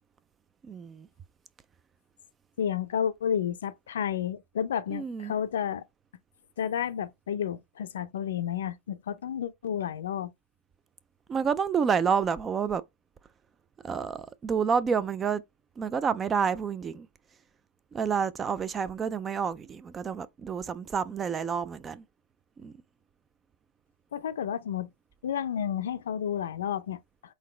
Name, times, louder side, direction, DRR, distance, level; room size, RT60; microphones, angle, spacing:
voice 1, 0.6-1.1 4.9-5.3 11.3-12.8 13.8-15.4 15.8-17.1 17.9-22.0 22.6-22.8, right 6 dB, 15° right, 0.4 m, -29 dB
voice 2, 2.6-5.8 6.6-10.3 24.1-24.9 25.2-27.0, left 9 dB, 90° left, 0.6 m, -31 dB
4.1 x 4.0 x 3.2 m
supercardioid pair, 155°, 0 cm